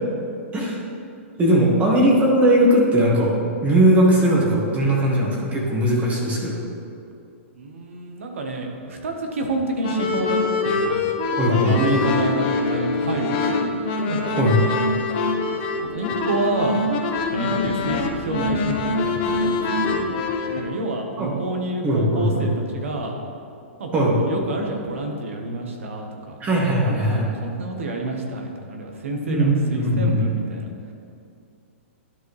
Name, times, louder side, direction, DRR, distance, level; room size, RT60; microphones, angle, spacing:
voice 1, 1.4-3.3 3.6-6.6 11.4-11.8 14.4-14.6 21.2-21.3 21.8-22.5 23.9-24.2 26.4-27.3 29.2-30.2, right 1 dB, 20° right, -2 dB, 1.6 m, -19 dB
voice 2, 7.5-11.0 11.5-13.8 14.1-14.4 15.8-16.8 17.3-20.0 20.5-23.1 23.8-26.3 26.9-30.7, right 2 dB, 75° right, 2 dB, 1.2 m, -28 dB
sound 1, 9.8-20.6, left 3 dB, 45° left, 0.9 m, -24 dB
11.5 x 4.7 x 3.2 m, 2.4 s
hypercardioid pair, 130°, 7 cm